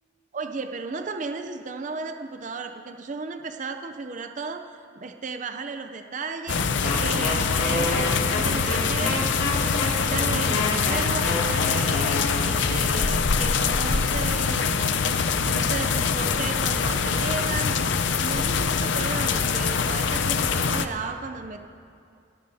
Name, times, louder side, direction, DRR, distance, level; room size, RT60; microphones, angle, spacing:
voice 1, 0.3-6.6 7.0-9.3 9.6-12.1 12.4-15.1 15.5-21.6, right 4 dB, 40° right, 6 dB, 0.5 m, -34 dB
sound 1, 6.5-20.9, left 5 dB, 65° left, 0.6 m, -24 dB
Wind instrument woodwind instrument, 6.8-12.9, left 2 dB, 50° left, 2.5 m, -29 dB
28.0 x 13.0 x 2.7 m, 2.5 s
head